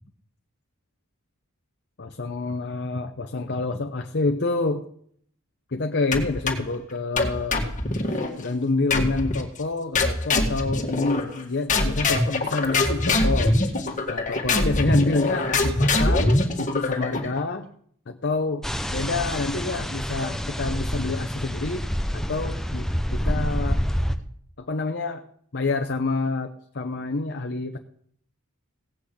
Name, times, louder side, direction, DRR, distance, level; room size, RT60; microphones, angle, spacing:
voice 1, 2.0-4.9 5.7-7.6 8.4-13.5 14.1-17.7 18.1-23.8 24.6-25.2 25.5-27.8, left 3 dB, 50° left, 6 dB, 0.9 m, -28 dB
sound 1, 6.1-6.7 7.2-8.3 8.9-9.4 9.9-11.4 11.7-17.4, left 2 dB, 35° left, 2.0 m, -23 dB
sound 2, 18.6-24.2, equal, ahead, 0.8 m, -27 dB
17.5 x 6.1 x 8.5 m, 0.64 s
head